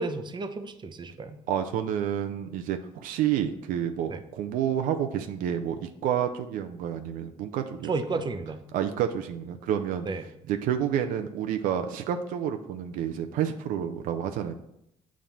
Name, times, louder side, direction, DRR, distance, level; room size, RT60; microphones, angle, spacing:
voice 1, 0.0-1.4 4.1-4.2 7.8-8.6 10.1-10.2, right 3 dB, 35° right, 9 dB, 0.6 m, -32 dB
voice 2, 1.5-7.9 8.7-10.1 10.5-14.5, right 9 dB, 75° right, 6 dB, 0.5 m, -29 dB
7.2 x 2.5 x 5.6 m, 0.80 s
supercardioid pair, 70°, 14 cm